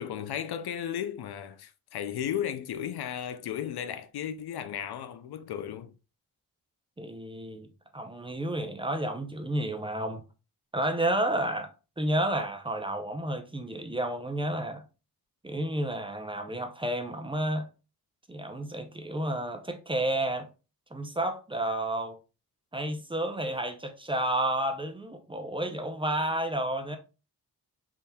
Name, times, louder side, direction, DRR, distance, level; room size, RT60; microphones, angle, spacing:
voice 1, 0.0-5.9, left 9 dB, 85° left, 0.5 m, -35 dB
voice 2, 7.0-7.7 7.9-10.2 10.7-11.7 12.0-14.8 15.4-17.7 18.3-20.5 20.9-22.2 22.7-27.0, right 1 dB, 15° right, 0.6 m, -31 dB
4.2 x 3.6 x 2.3 m
wide cardioid pair, 120°, 38 cm